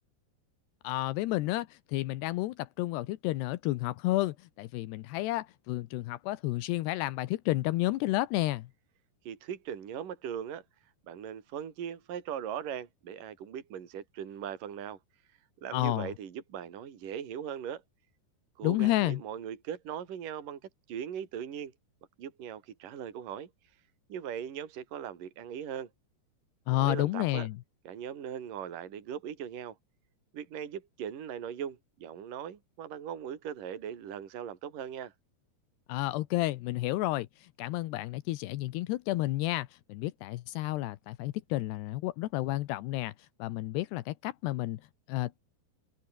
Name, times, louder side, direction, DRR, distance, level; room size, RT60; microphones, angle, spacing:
voice 1, 0.8-8.7 15.7-16.1 18.6-19.2 26.7-27.6 35.9-43.1 43.4-44.8 45.1-45.4, left 17 dB, 85° left, 2.9 m, -31 dB
voice 2, 9.3-10.6 11.1-15.0 15.6-17.8 18.6-20.6 20.9-21.7 22.2-23.5 24.1-25.9 26.7-27.5 27.9-29.8 30.3-35.1, right 9 dB, 55° right, 4.1 m, -39 dB
omnidirectional pair, 4.9 m